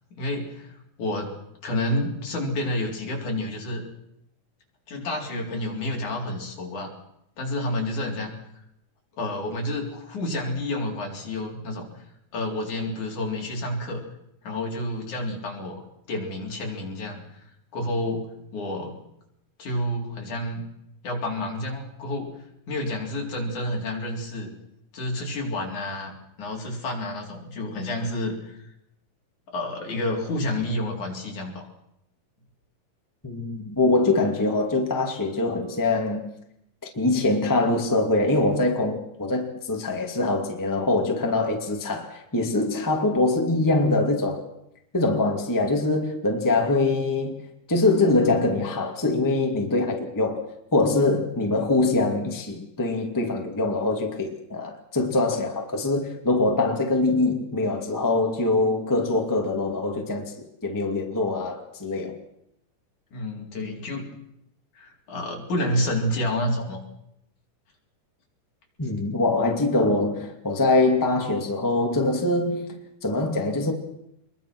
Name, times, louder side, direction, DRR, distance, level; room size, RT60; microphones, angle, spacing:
voice 1, 0.1-0.7 1.0-1.3 1.6-3.8 4.9-6.9 7.4-8.3 9.2-11.9 12.3-14.0 14.4-17.2 17.7-19.0 19.6-20.6 21.0-22.3 22.7-24.5 24.9-28.6 29.5-31.6 63.1-64.1 64.8-66.8, left 1 dB, 65° left, 5.4 m, -29 dB
voice 2, 33.2-36.3 37.0-44.5 44.9-47.4 47.7-60.3 60.6-62.1 68.8-73.7, left 2 dB, 5° left, 1.9 m, -23 dB
26.0 x 22.0 x 6.2 m
omnidirectional pair, 3.8 m